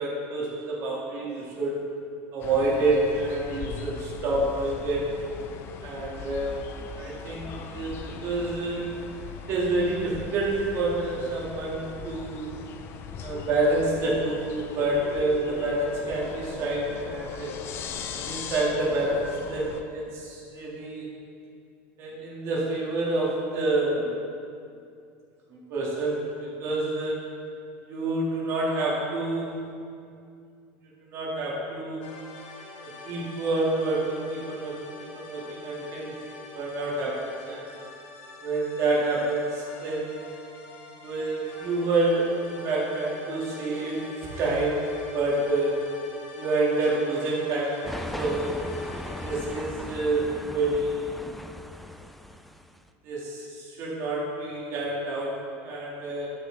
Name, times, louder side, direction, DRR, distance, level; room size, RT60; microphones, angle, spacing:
voice 1, 0.0-1.7 2.3-5.1 5.8-6.7 7.0-8.9 9.5-12.5 13.2-17.5 18.1-21.1 22.0-24.1 25.5-27.3 27.9-29.6 31.1-32.1 32.8-36.1 36.5-37.6 38.4-40.2 41.0-44.0 44.3-44.8 45.1-45.8 46.3-47.9 48.1-48.5 49.2-51.3 53.0-56.3, right 2 dB, 45° right, -4 dB, 2.1 m, -28 dB
sound 1, 2.4-19.8, left 6 dB, 40° left, 0.6 m, -39 dB
sound 2, 32.0-49.6, left 3 dB, 90° left, 1.7 m, -45 dB
sound 3, 47.8-52.8, left 1 dB, ahead, 0.3 m, -38 dB
12.0 x 7.5 x 3.4 m, 2.4 s
supercardioid pair, 145°, 6 cm